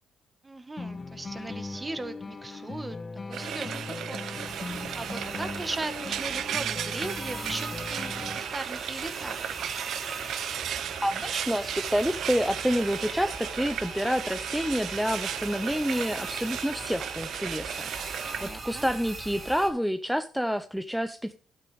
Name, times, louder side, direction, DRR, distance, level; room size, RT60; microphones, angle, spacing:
voice 1, 0.4-3.0 3.3-4.2 4.9-9.4 18.3-18.9, right 2 dB, 20° right, 10 dB, 1.4 m, -38 dB
sound 1, 0.8-8.7, left 3 dB, 35° left, 1.1 m, -39 dB
Frying (food), 3.3-18.5, right 9 dB, 70° right, 0.6 m, -35 dB
sound 2, 4.4-19.7, right 2 dB, 45° right, 4.4 m, -41 dB
voice 2, 11.0-21.3, equal, ahead, 9 dB, 0.6 m, -28 dB
12.0 x 9.4 x 3.4 m, 0.39 s
cardioid pair, 90°, 0 cm